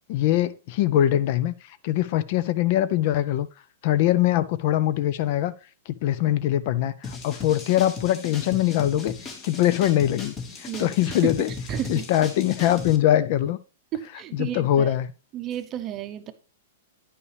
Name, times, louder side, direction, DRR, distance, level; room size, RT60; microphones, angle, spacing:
voice 1, 0.1-1.5 1.8-3.5 3.8-5.5 5.9-9.1 9.4-11.5 11.9-13.6 14.3-15.1, left 12 dB, 45° left, 0.4 m, -22 dB
sound 1, 7.0-13.0, left 4 dB, 20° left, 0.9 m, -37 dB
voice 2, 10.7-12.1 13.9-14.9 15.3-16.3, right 10 dB, 25° right, 0.7 m, -32 dB
9.6 x 5.5 x 3.2 m
hypercardioid pair, 155°, 0 cm